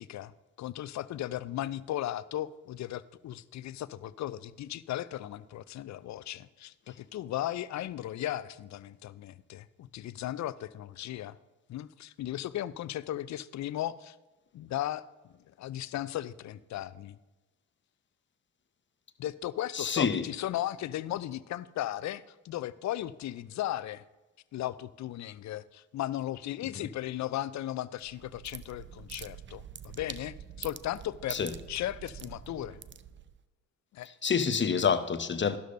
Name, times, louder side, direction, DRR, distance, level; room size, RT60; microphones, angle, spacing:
voice 1, 0.0-11.4 11.7-14.2 14.5-17.2 19.2-24.0 24.5-31.4 31.7-32.8 33.9-34.1, left 13 dB, 45° left, 0.5 m, -36 dB
voice 2, 19.7-20.3 26.8-26.9 31.3-31.5 34.2-35.6, left 6 dB, 30° left, 0.9 m, -27 dB
sound 1, 28.0-33.4, right 8 dB, 30° right, 0.6 m, -45 dB
12.5 x 11.0 x 2.6 m
hypercardioid pair, 45°, 39 cm